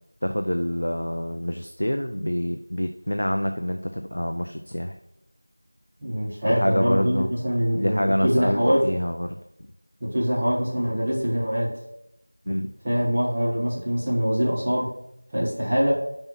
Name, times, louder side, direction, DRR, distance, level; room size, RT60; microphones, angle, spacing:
voice 1, 0.2-5.0 6.5-7.3 7.7-9.4 12.5-12.7, equal, 40° left, 6 dB, 0.4 m, -26 dB
voice 2, 6.0-8.8 10.0-11.8 12.8-14.9 15.3-15.9, equal, 5° right, -10 dB, 0.9 m, -23 dB
5.9 x 5.3 x 4.4 m, 0.82 s
figure-of-eight pair, 180°, 0 cm